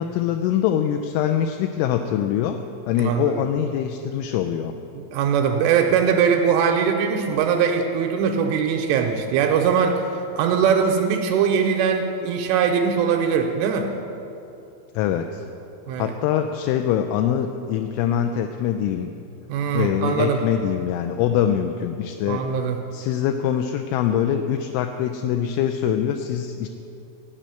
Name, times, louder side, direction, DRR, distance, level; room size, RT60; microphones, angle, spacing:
voice 1, 0.0-4.7 14.9-15.5 16.0-19.1 19.7-22.5 22.9-26.7, left 9 dB, 85° left, 5 dB, 2.8 m, -23 dB
voice 2, 3.0-3.4 4.9-10.0 10.4-13.9 15.9-16.1 19.5-20.4 22.3-22.8, right 7 dB, 85° right, 3 dB, 3.0 m, -21 dB
13.5 x 5.5 x 9.0 m, 2.7 s
omnidirectional pair, 6.0 m